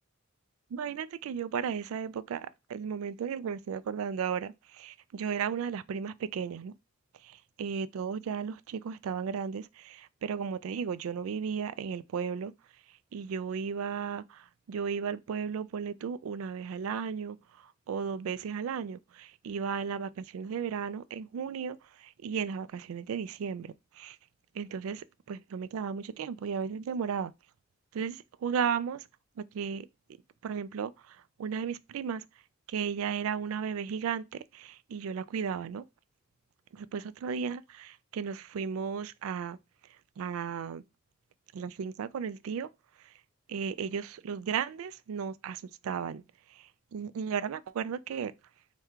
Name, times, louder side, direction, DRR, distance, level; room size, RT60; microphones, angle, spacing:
voice 1, 0.7-6.7 7.6-12.5 13.1-24.2 24.5-27.3 27.9-29.1 29.4-29.9 30.4-32.2 32.7-35.9 36.7-39.6 40.2-40.8 41.5-42.7 43.0-43.1 43.5-46.2 46.5-48.3, right 6 dB, 80° right, 0.3 m, -35 dB
3.5 x 2.2 x 4.4 m
head